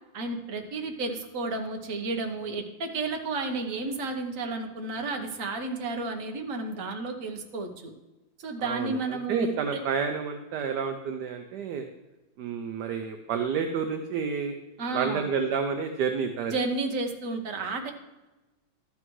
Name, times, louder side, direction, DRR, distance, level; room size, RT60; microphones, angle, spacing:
voice 1, 0.1-7.9 8.4-9.8 14.8-15.3 16.5-17.9, right 3 dB, 50° right, 4 dB, 1.3 m, -32 dB
voice 2, 8.6-11.8 12.4-14.6 14.9-16.5, right 6 dB, 70° right, 6 dB, 1.1 m, -30 dB
12.5 x 8.7 x 3.2 m, 1.1 s
omnidirectional pair, 2.1 m